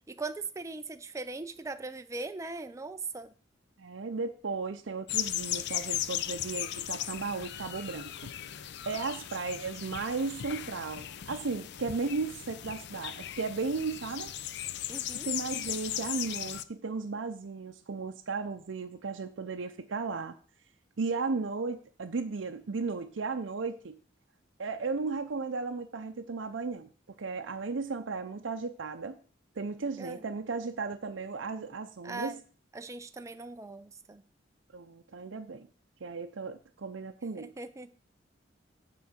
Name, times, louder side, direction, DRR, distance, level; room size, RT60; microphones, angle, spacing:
voice 1, 0.1-3.3 14.9-15.3 30.0-30.3 32.0-32.4 32.7-34.2 37.4-37.9, right 3 dB, 15° right, 8 dB, 0.4 m, -40 dB
voice 2, 3.8-8.3 8.9-14.3 15.2-20.3 21.0-24.0 24.6-26.9 27.2-29.2 29.6-32.4 34.7-35.7 36.0-37.5, right 4 dB, 70° right, 5 dB, 0.6 m, -35 dB
sound 1, 5.1-16.6, left 12 dB, 60° left, 0.5 m, -37 dB
9.6 x 3.8 x 7.2 m, 0.43 s
head